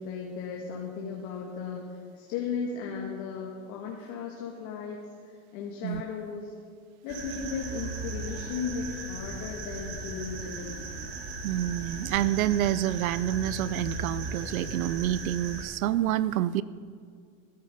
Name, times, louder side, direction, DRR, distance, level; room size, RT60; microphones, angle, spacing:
voice 1, 0.0-6.5 7.0-10.8, left 6 dB, 55° left, -1 dB, 2.1 m, -36 dB
sound 1, 7.1-15.6, right 2 dB, 55° right, 2.9 m, -37 dB
voice 2, 11.4-16.6, right 13 dB, 90° right, 18 dB, 0.6 m, -28 dB
16.5 x 9.7 x 5.4 m, 2.2 s
supercardioid pair, 120°, 41 cm